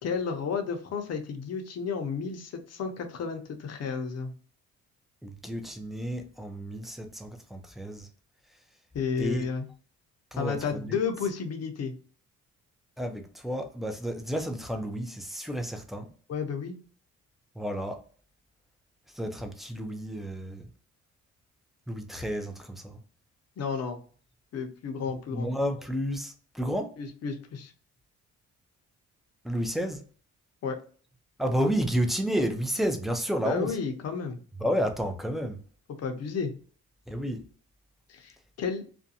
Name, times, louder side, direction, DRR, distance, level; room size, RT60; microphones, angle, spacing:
voice 1, 0.0-4.3 8.9-9.7 10.4-11.9 16.3-16.8 23.6-24.0 24.5-25.5 27.0-27.7 30.6-30.8 33.4-34.4 36.0-36.5 38.1-38.9, left 5 dB, 55° left, 0.7 m, -32 dB
voice 2, 5.2-8.1 9.2-9.5 10.3-11.0 13.0-16.1 17.6-18.0 19.1-20.6 21.9-23.0 25.3-26.9 29.4-30.0 31.4-33.8 34.6-35.6 37.1-37.5, equal, ahead, 0.4 m, -31 dB
2.5 x 2.2 x 2.6 m
cardioid pair, 90°, 30 cm